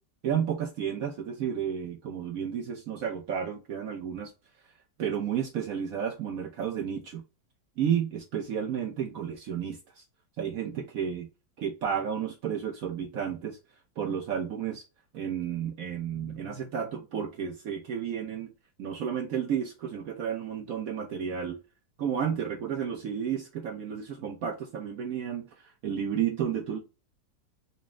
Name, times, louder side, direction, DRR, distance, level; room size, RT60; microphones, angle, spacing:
voice 1, 0.2-4.3 5.0-7.2 7.8-10.0 10.4-11.3 11.6-13.6 14.0-14.8 15.1-18.5 18.8-21.6 22.0-25.5 25.8-26.8, right 8 dB, 65° right, 0.8 m, -32 dB
4.1 x 2.1 x 3.5 m
omnidirectional pair, 2.0 m